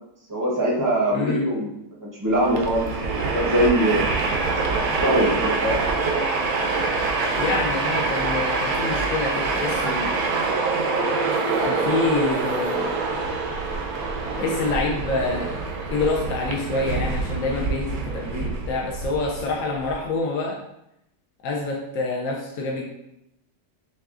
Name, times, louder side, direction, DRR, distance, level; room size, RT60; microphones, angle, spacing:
voice 1, 0.3-1.7 2.2-2.9 3.3-4.1 4.8-5.8, right 1 dB, 20° right, -4 dB, 0.6 m, -22 dB
voice 2, 1.1-1.5 7.4-10.2 10.7-10.8 11.6-12.9 14.4-15.6 15.9-20.6 21.4-22.9, left 3 dB, 65° left, -1 dB, 0.8 m, -27 dB
Train, 2.3-19.9, right 3 dB, 70° right, 1.0 m, -25 dB
6.6 x 2.3 x 2.4 m, 0.81 s
omnidirectional pair, 1.9 m